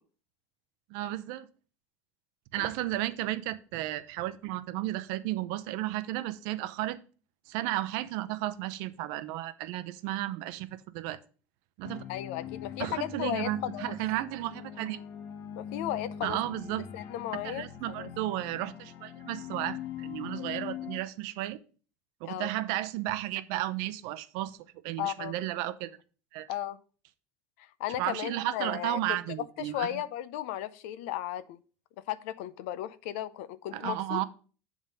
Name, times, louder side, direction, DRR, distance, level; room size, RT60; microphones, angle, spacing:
voice 1, 0.9-1.5 2.5-7.0 7.5-11.2 11.8-12.0 12.8-15.0 16.2-16.8 17.3-21.6 22.2-24.6 24.8-26.0 26.3-26.5 28.0-30.0 33.7-34.2, right 15 dB, 65° right, 0.6 m, -33 dB
sound 1, 11.8-21.0, left 9 dB, 45° left, 0.8 m, -42 dB
voice 2, 12.1-14.0 15.6-16.4 16.9-17.6 18.0-18.1 22.2-22.5 25.0-25.3 26.5-26.8 27.8-29.2 29.6-31.6 32.1-34.2, left 12 dB, 75° left, 0.5 m, -35 dB
9.0 x 3.6 x 5.3 m
cardioid pair, 170°, 7 cm